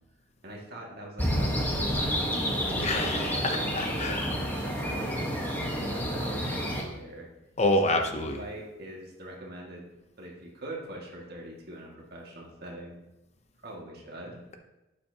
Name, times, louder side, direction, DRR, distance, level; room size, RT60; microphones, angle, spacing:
voice 1, 0.4-2.3 2.7-5.3 5.8-7.3 8.0-9.9 10.2-13.0 13.6-14.4, right 1 dB, 50° right, -2 dB, 1.9 m, -43 dB
sound 1, 1.2-6.8, equal, 10° left, 1.2 m, -29 dB
voice 2, 2.8-4.3 7.6-8.4, left 1 dB, 35° left, 5 dB, 0.7 m, -27 dB
11.5 x 8.4 x 2.8 m, 1.0 s
head